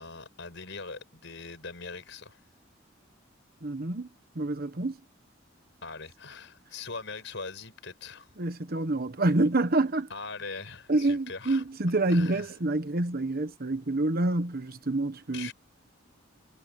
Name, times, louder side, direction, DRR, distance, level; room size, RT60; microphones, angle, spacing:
voice 1, 0.0-2.4 5.8-8.3 10.1-11.6 12.1-12.5 15.3-15.5, left 4 dB, 70° left, 6.3 m, -41 dB
voice 2, 3.6-4.1 4.3-5.0 8.4-10.1 10.9-15.5, right 2 dB, 50° right, 1.3 m, -27 dB
head